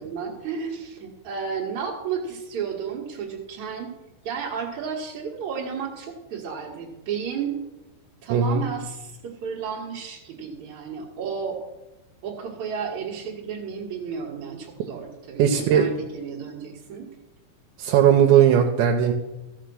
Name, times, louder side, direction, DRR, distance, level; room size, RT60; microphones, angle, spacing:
voice 1, 0.0-3.9 4.2-7.6 8.2-11.6 12.2-17.1, right 6 dB, 60° right, -4 dB, 2.0 m, -32 dB
voice 2, 8.3-8.6 15.4-15.9 17.8-19.1, right 9 dB, 80° right, 3 dB, 2.9 m, -18 dB
14.0 x 6.7 x 6.2 m, 1.0 s
omnidirectional pair, 5.3 m